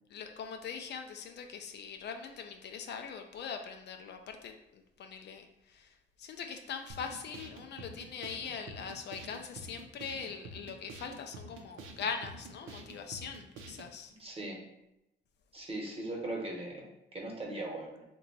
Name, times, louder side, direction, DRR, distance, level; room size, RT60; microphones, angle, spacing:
voice 1, 0.1-5.9 6.2-14.1, left 6 dB, 60° left, 5 dB, 0.4 m, -42 dB
sound 1, 6.9-13.9, right 2 dB, 85° right, 0.5 m, -48 dB
voice 2, 14.1-14.6 15.5-18.0, right 1 dB, 30° right, -1 dB, 0.9 m, -39 dB
2.9 x 2.2 x 4.0 m, 0.88 s
cardioid pair, 90°, 20 cm